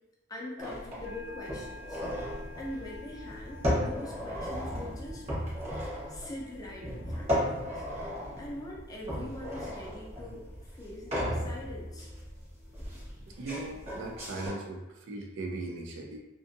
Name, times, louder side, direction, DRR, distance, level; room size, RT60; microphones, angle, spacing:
voice 1, 0.3-2.0 2.6-5.2 6.1-7.8 8.4-12.1, left 1 dB, 15° left, -3 dB, 0.5 m, -43 dB
sound 1, 0.6-14.5, equal, 30° right, 0.9 m, -36 dB
sound 2, 1.0-14.9, left 5 dB, 70° left, 0.5 m, -53 dB
voice 2, 13.3-16.2, right 2 dB, 60° right, 1 dB, 0.4 m, -38 dB
2.6 x 2.5 x 2.5 m, 1.0 s
head